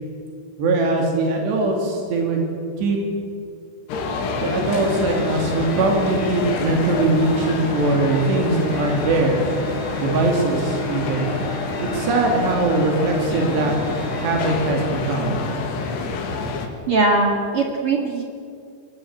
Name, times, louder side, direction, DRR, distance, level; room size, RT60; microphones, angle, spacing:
voice 1, 0.6-2.5 2.8-3.0 4.3-9.4 10.0-11.3 11.8-13.7 14.2-15.4, right 2 dB, 85° right, 1 dB, 5.0 m, -21 dB
sound 1, 3.9-16.7, left 4 dB, 80° left, 4.0 m, -27 dB
Organ, 4.4-15.2, right 7 dB, 65° right, 3.4 m, -36 dB
voice 2, 16.9-18.2, right 3 dB, 45° right, 1 dB, 2.2 m, -20 dB
23.0 x 17.0 x 8.8 m, 2.3 s
omnidirectional pair, 4.8 m